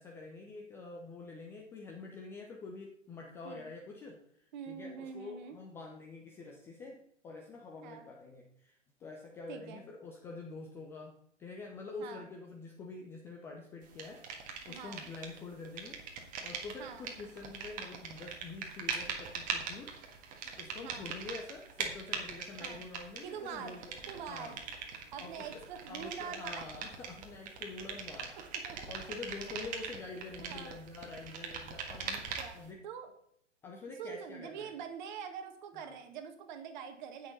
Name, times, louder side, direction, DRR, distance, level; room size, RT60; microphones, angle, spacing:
voice 1, 0.0-11.1 11.4-14.2 14.6-23.9 24.3-24.6 25.2-28.4 28.9-32.8 33.6-34.8 35.7-35.9, left 3 dB, 5° left, 1 dB, 0.4 m, -47 dB
voice 2, 4.5-5.6 7.8-8.1 9.5-9.8 12.0-12.3 14.7-15.1 16.8-17.1 20.8-21.1 22.6-22.8 23.2-23.8 24.1-24.6 25.1-26.6 28.6-28.9 30.4-30.8 31.9-32.6 32.8-33.1 34.0-37.3, right 7 dB, 40° right, 7 dB, 1.6 m, -44 dB
sound 1, 14.0-15.4 15.6-32.7, right 6 dB, 20° right, 1.6 m, -41 dB
17.0 x 6.5 x 4.0 m, 0.70 s
figure-of-eight pair, 115°, 36 cm